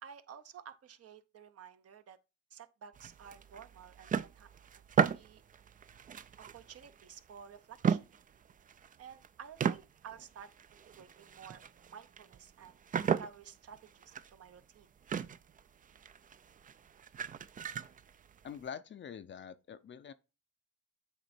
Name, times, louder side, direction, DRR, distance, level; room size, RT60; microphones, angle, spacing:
voice 1, 0.0-2.2 2.5-4.5 5.0-5.4 6.5-8.1 9.0-11.6 11.9-12.8 13.2-14.9, right 7 dB, 50° right, 0.7 m, -52 dB
sound 1, 3.0-7.4 7.8-9.3 9.6-18.7, right 7 dB, 30° right, 0.3 m, -36 dB
voice 2, 18.4-20.1, left 7 dB, 40° left, 0.5 m, -45 dB
8.2 x 3.2 x 4.3 m
cardioid pair, 90°, 30 cm